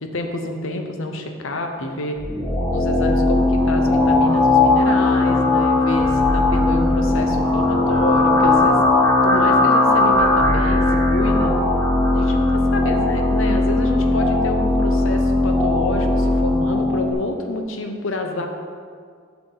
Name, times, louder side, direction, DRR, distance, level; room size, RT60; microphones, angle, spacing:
voice 1, 0.0-2.2 2.7-8.8 9.2-11.5 12.1-18.5, left 2 dB, 75° left, 4 dB, 0.8 m, -28 dB
sound 1, 2.2-17.1, left 2 dB, 15° left, 1.1 m, -18 dB
8.1 x 5.9 x 3.9 m, 2.1 s
head